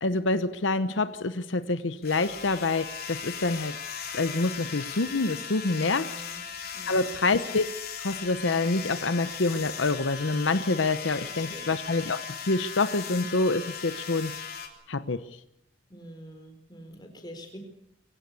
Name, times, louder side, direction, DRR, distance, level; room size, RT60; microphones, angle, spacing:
voice 1, 0.0-3.8 4.1-6.1 6.9-7.7 8.0-14.3 14.9-15.3, left 3 dB, 75° left, 12 dB, 0.9 m, -27 dB
sound 1, 2.0-14.7, left 7 dB, 50° left, 3.5 m, -38 dB
voice 2, 5.8-6.4 6.7-7.3 11.2-11.7 15.9-17.6, equal, 20° left, 5 dB, 4.3 m, -46 dB
23.5 x 16.5 x 8.3 m, 0.78 s
head